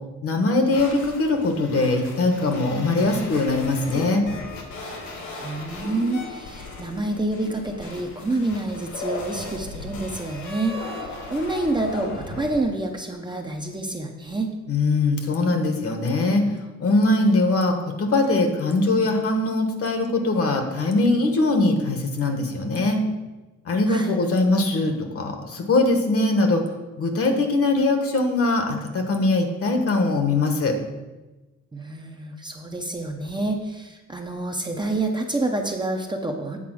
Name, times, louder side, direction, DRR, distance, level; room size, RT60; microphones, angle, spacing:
voice 1, 0.2-4.2 14.7-16.4 16.8-23.0 23.6-26.6 27.0-30.8, left 2 dB, 50° left, 5 dB, 1.2 m, -21 dB
sound 1, 0.7-12.6, left 3 dB, 80° left, 1.7 m, -37 dB
voice 2, 5.4-14.5 23.9-24.1 31.7-36.6, right 2 dB, 15° right, 2 dB, 0.6 m, -28 dB
8.6 x 4.7 x 6.1 m, 1.1 s
wide cardioid pair, 170°, 29 cm